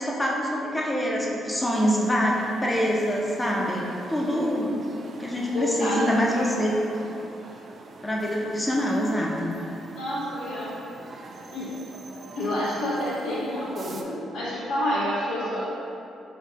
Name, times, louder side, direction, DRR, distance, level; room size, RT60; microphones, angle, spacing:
voice 1, 0.0-4.7 5.2-6.7 8.0-9.6, equal, 15° left, -2 dB, 0.6 m, -25 dB
sound 1, 1.7-14.0, right 3 dB, 45° right, 0.3 m, -44 dB
voice 2, 5.5-6.4 9.9-10.8 11.5-11.8 12.3-15.7, left 1 dB, 85° left, -8 dB, 1.2 m, -28 dB
5.0 x 2.7 x 2.8 m, 2.7 s
cardioid pair, 90°, 0 cm